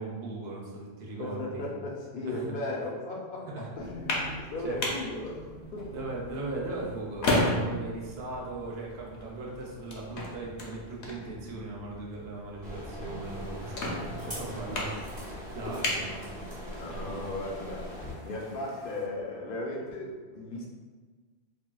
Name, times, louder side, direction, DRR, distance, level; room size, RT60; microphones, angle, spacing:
voice 1, 0.0-1.7 2.3-2.4 3.5-3.7 4.6-4.8 5.9-14.9 15.5-16.3 16.9-17.2, right 2 dB, 70° right, -3 dB, 0.9 m, -38 dB
voice 2, 1.2-6.0 13.0-13.1 13.9-14.0 14.2-14.3 15.6-16.2 16.6-20.7, left 2 dB, 60° left, -3 dB, 0.7 m, -37 dB
sound 1, 3.8-16.9, left 1 dB, 85° left, 0.9 m, -35 dB
sound 2, 12.6-18.1, equal, 10° right, 0.9 m, -41 dB
sound 3, 13.2-19.1, equal, 25° right, 0.6 m, -50 dB
3.5 x 2.4 x 2.2 m, 1.4 s
omnidirectional pair, 1.1 m